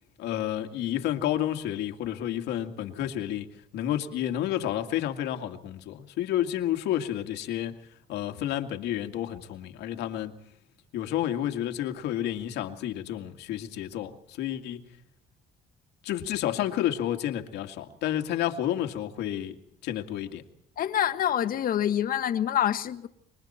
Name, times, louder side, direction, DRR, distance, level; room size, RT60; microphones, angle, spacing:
voice 1, 0.2-7.8 8.1-10.4 10.9-14.8 16.0-19.5 19.8-20.4, left 11 dB, 85° left, 2.2 m, -30 dB
voice 2, 20.8-23.1, left 10 dB, 60° left, 1.6 m, -26 dB
28.0 x 24.0 x 4.4 m
cardioid pair, 110°, 17 cm